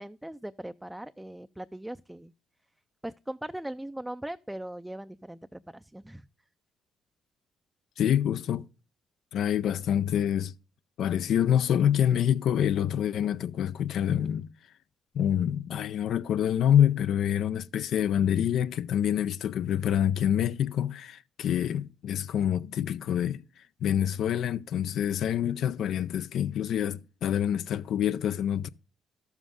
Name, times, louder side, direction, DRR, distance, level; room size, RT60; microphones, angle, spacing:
voice 1, 0.0-2.3 3.0-6.3, right 1 dB, 5° right, 0.4 m, -39 dB
voice 2, 8.0-8.6 9.3-10.5 11.0-14.5 15.1-23.4 23.8-28.7, left 10 dB, 75° left, 0.4 m, -26 dB
12.5 x 7.3 x 3.7 m
cardioid pair, 90°, 0 cm